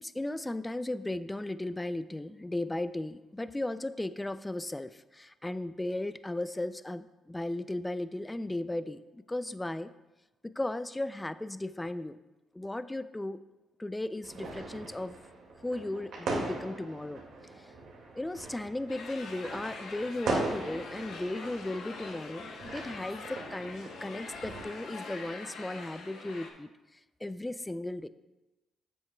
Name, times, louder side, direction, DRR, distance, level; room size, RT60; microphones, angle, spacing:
voice 1, 0.0-9.9 10.5-12.2 12.5-13.4 13.8-15.2 15.6-17.2 17.6-17.7 18.1-28.1, left 1 dB, 10° left, 13 dB, 0.3 m, -36 dB
sound 1, 14.2-24.6, right 2 dB, 75° right, 2.0 m, -39 dB
sound 2, 18.9-26.5, left 4 dB, 80° left, 1.0 m, -44 dB
10.5 x 7.7 x 2.3 m, 1.1 s
cardioid pair, 90°, 0 cm